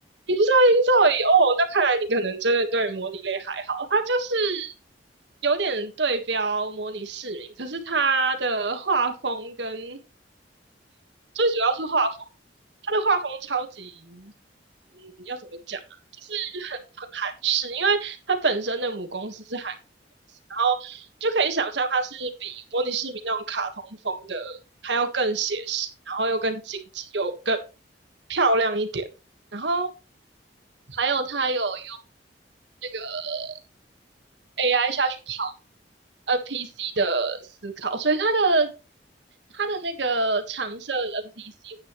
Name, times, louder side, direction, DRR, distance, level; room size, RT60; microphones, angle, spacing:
voice 1, 0.3-4.7 5.4-10.0 11.3-12.1 12.9-14.3 15.0-15.4 15.7-15.8 16.2-19.7 20.5-24.6 24.8-27.6 28.3-29.0 29.5-29.9 30.9-32.0 32.8-33.6 34.6-35.5 36.3-38.7 39.5-41.8, right 3 dB, 75° right, 6 dB, 1.6 m, -25 dB
9.6 x 9.1 x 3.1 m, 0.30 s
head